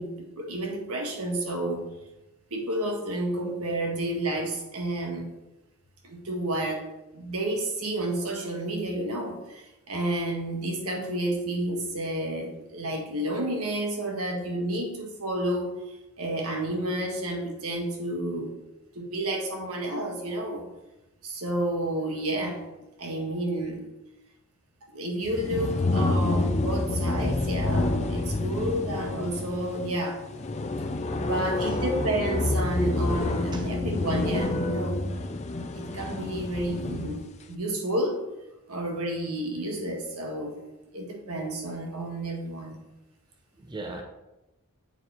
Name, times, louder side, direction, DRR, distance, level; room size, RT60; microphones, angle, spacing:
voice 1, 0.0-1.8 2.5-5.3 6.0-6.8 7.1-15.7 16.2-18.5 18.9-20.7 21.2-22.7 23.0-23.8 24.9-30.2 31.1-35.0 35.7-37.2 37.5-38.2 38.7-40.6 40.9-42.8, right 1 dB, 85° right, 1 dB, 1.6 m, -30 dB
sound 1, 25.3-37.3, left 2 dB, 30° left, 0.5 m, -28 dB
voice 2, 31.2-31.8 33.5-33.7 43.5-44.0, right 2 dB, 20° right, 3 dB, 0.7 m, -39 dB
7.9 x 4.6 x 4.3 m, 0.97 s
head